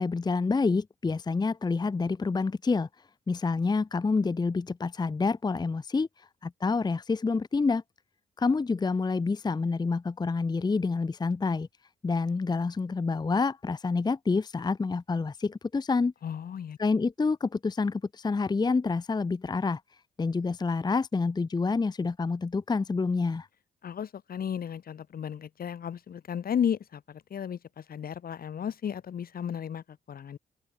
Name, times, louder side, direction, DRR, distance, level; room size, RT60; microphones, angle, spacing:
voice 1, 0.0-2.9 3.3-6.1 6.4-7.8 8.4-11.7 12.0-16.1 16.8-19.8 20.2-23.5, left 4 dB, 20° left, 0.6 m, -28 dB
voice 2, 16.2-16.8 23.8-27.6 27.9-30.4, left 8 dB, 50° left, 1.0 m, -34 dB
open air
hypercardioid pair, 45°, 19 cm